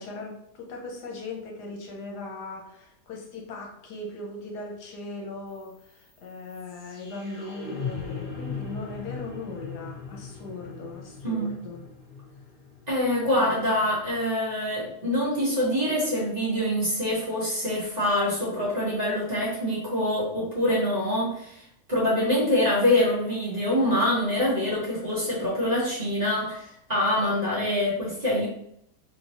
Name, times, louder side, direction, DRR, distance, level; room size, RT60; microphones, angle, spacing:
voice 1, 0.0-11.8 13.3-13.8 22.2-22.5, left 2 dB, 80° left, 0 dB, 1.3 m, -39 dB
sound 1, 5.5-15.5, left 5 dB, 45° left, 0.8 m, -40 dB
voice 2, 11.2-11.6 12.9-21.6 21.9-28.5, left 1 dB, 25° right, -8 dB, 1.3 m, -25 dB
3.3 x 3.0 x 2.8 m, 0.73 s
omnidirectional pair, 1.7 m